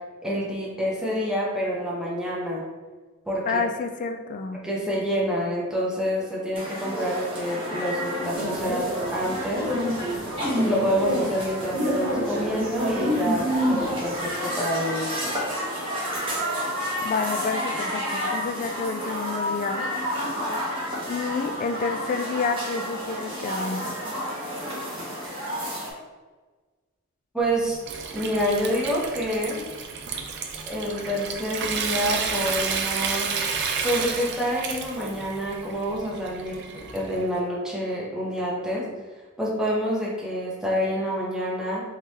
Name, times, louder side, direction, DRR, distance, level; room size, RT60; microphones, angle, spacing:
voice 1, 0.2-2.7 3.3-3.6 4.6-9.7 10.6-15.3 27.3-27.8 28.1-29.6 30.7-33.3 33.8-38.9 39.4-41.8, equal, 5° right, -5 dB, 0.8 m, -27 dB
voice 2, 3.5-4.6 17.0-19.9 21.1-23.9, left 4 dB, 40° left, 7 dB, 0.3 m, -29 dB
sound 1, 6.5-25.9, equal, 25° right, 1.0 m, -31 dB
sound 2, 8.3-14.3, equal, 75° right, 0.9 m, -28 dB
Water tap faucet / Sink (filling or washing) / Trickle dribble, 27.4-37.3, right 5 dB, 55° right, 0.4 m, -31 dB
3.7 x 3.1 x 2.8 m, 1.4 s
head